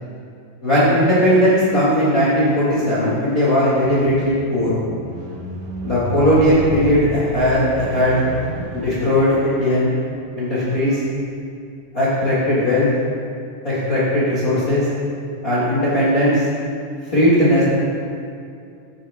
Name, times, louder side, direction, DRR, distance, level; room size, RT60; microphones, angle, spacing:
voice 1, 0.6-4.8 5.8-8.2 8.7-9.9 10.4-11.0 11.9-12.9 13.6-14.8 15.4-16.4 17.1-17.6, equal, 85° left, -11 dB, 0.7 m, -17 dB
Squeak, 3.8-10.2 11.0-11.1, right 1 dB, 60° right, 2.2 m, -31 dB
15.0 x 6.4 x 3.6 m, 2.5 s
omnidirectional pair, 5.0 m